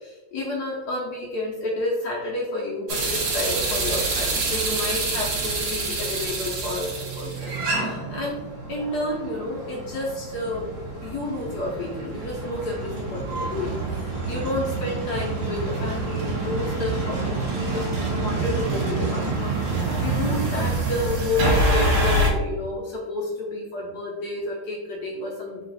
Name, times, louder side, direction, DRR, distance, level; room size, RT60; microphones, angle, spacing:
voice 1, 0.0-8.4 8.7-10.7 11.0-25.6, left 2 dB, 70° left, -4 dB, 1.2 m, -30 dB
sound 1, 2.9-22.3, right 2 dB, 85° right, 1.5 m, -27 dB
3.8 x 2.4 x 4.0 m, 1.1 s
omnidirectional pair, 1.9 m